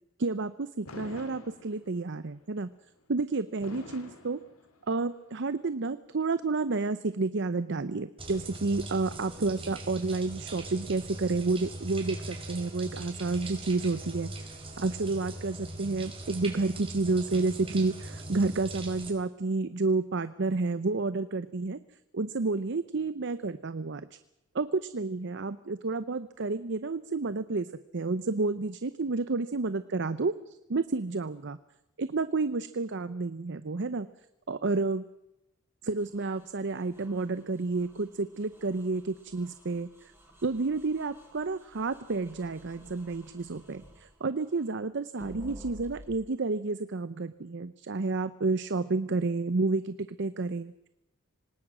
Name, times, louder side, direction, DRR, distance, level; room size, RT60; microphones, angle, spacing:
voice 1, 0.2-2.7 3.1-4.4 4.9-14.3 14.8-21.8 22.1-24.1 24.5-31.6 32.0-34.1 34.5-35.0 35.8-40.1 40.4-50.7, right 3 dB, 55° right, 13 dB, 0.7 m, -30 dB
Fireworks, 0.9-2.2 3.6-5.2, left 2 dB, 85° left, 2.7 m, -47 dB
sound 1, 8.2-19.1, right 2 dB, 25° right, 4.6 m, -41 dB
sound 2, 36.0-44.8 45.1-46.2, equal, 10° right, 5.6 m, -52 dB
26.0 x 19.0 x 6.1 m, 0.88 s
head